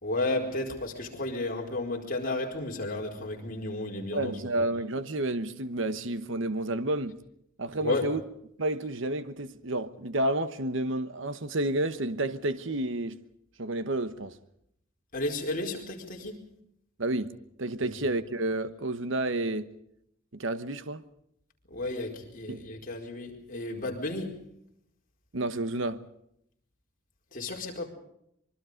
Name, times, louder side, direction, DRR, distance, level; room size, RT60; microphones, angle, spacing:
voice 1, 0.0-4.3 7.8-8.1 15.1-16.4 21.7-24.4 27.3-27.9, left 2 dB, 45° left, 4.7 m, -32 dB
voice 2, 4.1-7.2 7.6-8.2 8.6-13.2 13.6-14.4 17.0-19.7 20.3-21.0 22.5-22.6 25.3-26.0, right 2 dB, 65° right, 1.1 m, -30 dB
25.0 x 23.5 x 5.2 m
head